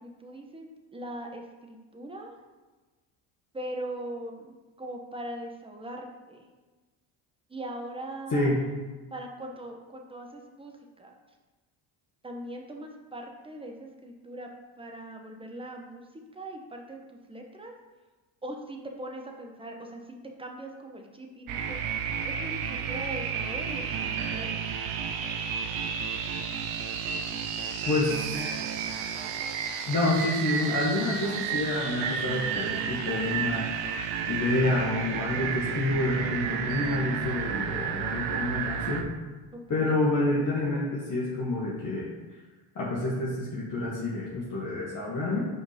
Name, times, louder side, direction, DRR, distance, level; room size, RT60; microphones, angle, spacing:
voice 1, 0.0-2.3 3.5-6.5 7.5-8.7 9.1-11.1 12.2-14.5 14.8-16.0 16.3-17.0 17.3-17.7 18.4-21.8 22.2-24.7 39.7-40.0, right 1 dB, 10° right, 2 dB, 1.1 m, -40 dB
sound 1, 21.5-39.0, right 7 dB, 90° right, 0.8 m, -32 dB
voice 2, 27.9-28.4 29.9-33.7 34.3-39.0 39.7-42.1 42.7-45.4, left 2 dB, 40° left, -6 dB, 1.7 m, -28 dB
5.2 x 4.9 x 5.1 m, 1.2 s
supercardioid pair, 90°, 47 cm